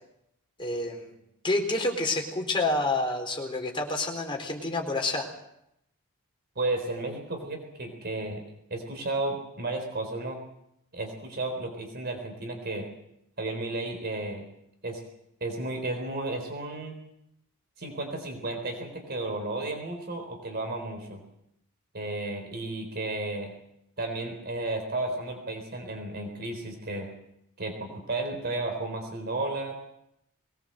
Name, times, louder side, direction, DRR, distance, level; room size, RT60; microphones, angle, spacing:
voice 1, 0.6-1.2 1.4-5.3, left 2 dB, 25° left, 1 dB, 4.2 m, -28 dB
voice 2, 6.6-8.4 8.7-10.4 10.9-12.9 13.4-14.4 14.8-15.0 15.4-17.0 17.8-21.2 21.9-23.5 24.0-27.1 27.6-29.8, right 2 dB, 45° right, 4 dB, 4.0 m, -33 dB
22.0 x 19.5 x 7.8 m, 0.79 s
head